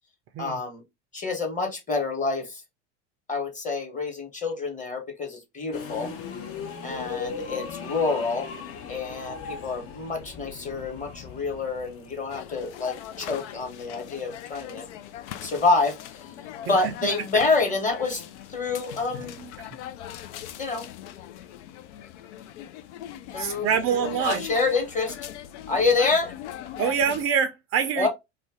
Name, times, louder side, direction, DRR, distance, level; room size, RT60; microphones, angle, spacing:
voice 1, 0.4-0.8 1.1-2.6 3.3-6.1 6.8-8.5 8.9-14.8 15.4-16.3 16.7-18.2 18.5-19.4 20.6-20.8 23.3-25.2 25.7-26.3 26.6-26.7 28.0-28.1, left 3 dB, 20° left, 1.2 m, -27 dB
sound 1, 5.7-20.8, left 6 dB, 40° left, 0.7 m, -41 dB
sound 2, 12.3-27.2, left 11 dB, 75° left, 0.5 m, -40 dB
voice 2, 19.4-19.7 23.4-24.4 26.8-28.1, right 7 dB, 40° right, 0.4 m, -25 dB
2.5 x 2.2 x 3.5 m
hypercardioid pair, 95°, 35 cm